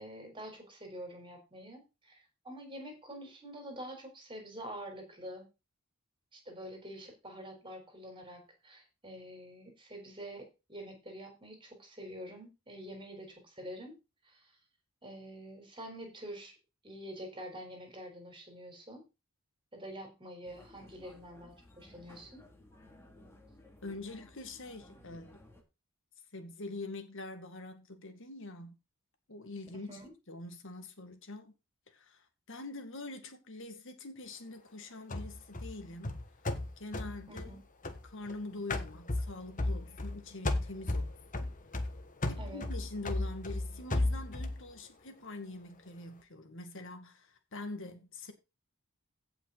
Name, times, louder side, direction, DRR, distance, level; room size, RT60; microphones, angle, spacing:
voice 1, 0.0-5.5 6.3-14.0 14.2-14.5 15.0-16.5 16.8-19.0 19.7-22.4 29.7-30.1 37.3-37.6 42.4-42.6, equal, 25° right, 4.1 m, -47 dB
sound 1, 20.4-25.6, left 1 dB, 10° left, 2.6 m, -57 dB
voice 2, 23.8-25.4 26.3-28.8 29.3-30.0 30.3-31.5 31.9-36.2 36.8-37.6 38.0-41.6 42.3-48.3, left 2 dB, 60° left, 2.0 m, -44 dB
sound 2, 35.1-38.3 38.7-40.2 40.4-44.6, left 2 dB, 35° left, 1.4 m, -35 dB
16.5 x 5.9 x 4.1 m
head